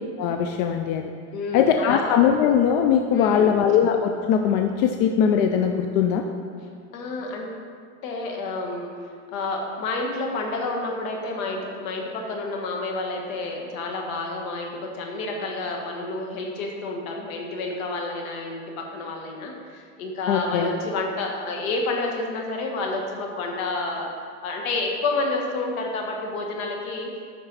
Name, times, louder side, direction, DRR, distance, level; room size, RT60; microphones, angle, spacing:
voice 1, 0.2-1.1 1.5-6.2 20.3-20.7, left 8 dB, 55° left, 5 dB, 0.5 m, -20 dB
voice 2, 1.3-2.1 3.1-3.5 6.9-7.5 8.0-8.9 9.3-24.1 24.4-27.1, left 3 dB, 75° left, 1 dB, 1.6 m, -29 dB
8.9 x 6.2 x 4.0 m, 2.1 s
supercardioid pair, 150°, 41 cm